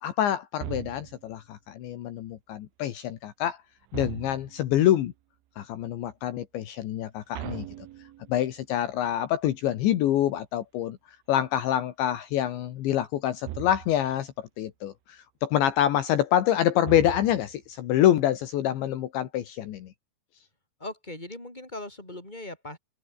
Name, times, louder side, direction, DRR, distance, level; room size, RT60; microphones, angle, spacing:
voice 1, 0.0-3.6 3.9-5.1 5.6-7.7 8.3-11.0 11.3-19.9, left 11 dB, 70° left, 3.8 m, -26 dB
sound 1, 0.6-1.4 3.9-4.7 7.3-8.5 13.4-14.1 16.8-17.7, right 15 dB, 80° right, 3.8 m, -39 dB
voice 2, 20.8-22.8, left 2 dB, 10° left, 7.7 m, -39 dB
omnidirectional pair, 5.6 m